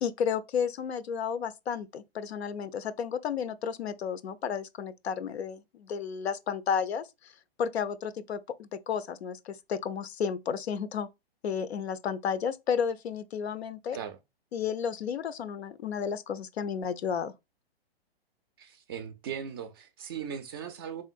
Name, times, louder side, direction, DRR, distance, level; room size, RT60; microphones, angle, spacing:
voice 1, 0.0-11.1 11.4-14.0 14.5-17.3, left 7 dB, 90° left, 0.6 m, -32 dB
voice 2, 18.6-21.0, right 8 dB, 25° right, 0.3 m, -38 dB
3.7 x 3.6 x 2.5 m
hypercardioid pair, 140°, 31 cm